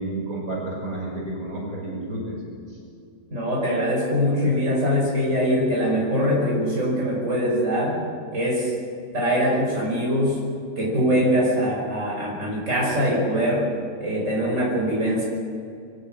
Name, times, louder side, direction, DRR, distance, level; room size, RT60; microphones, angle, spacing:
voice 1, 0.0-2.4 2.7-2.8, right 2 dB, 75° right, -2 dB, 6.2 m, -31 dB
voice 2, 3.3-8.0 8.3-8.7 9.1-10.4 10.8-13.7 14.0-15.2, equal, 55° right, -4 dB, 6.0 m, -22 dB
25.5 x 15.0 x 8.0 m, 2.4 s
omnidirectional pair, 1.5 m